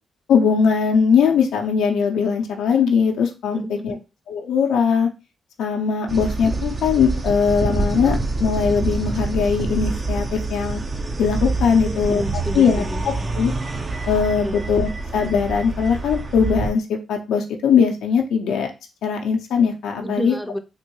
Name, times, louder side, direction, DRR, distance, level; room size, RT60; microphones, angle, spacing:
voice 1, 0.3-3.9 4.3-5.1 5.6-10.8 11.2-12.2 12.5-12.8 13.4-13.5 14.1-18.7 19.0-20.3, left 6 dB, 80° left, 2 dB, 0.6 m, -20 dB
voice 2, 3.5-4.0 11.7-13.3 14.4-14.6 20.0-20.6, equal, ahead, 6 dB, 0.6 m, -30 dB
sound 1, 6.1-16.7, right 3 dB, 40° right, 0.7 m, -26 dB
3.6 x 2.2 x 3.0 m, 0.28 s
supercardioid pair, 50°, 0 cm